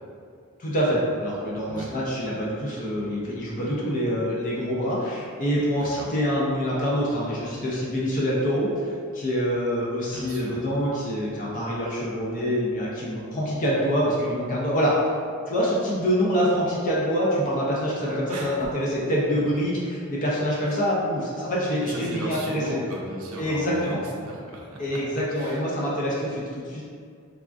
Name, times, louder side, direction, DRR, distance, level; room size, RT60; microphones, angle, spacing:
voice 1, 0.6-15.1 15.5-22.6 23.4-24.0 24.8-26.8, equal, 40° left, -5 dB, 0.4 m, -25 dB
voice 2, 5.8-6.1 10.1-10.6 18.3-18.5 20.7-20.8 21.8-25.0 25.3-25.6, equal, 70° right, -3 dB, 0.4 m, -36 dB
3.4 x 2.2 x 2.4 m, 2.2 s
head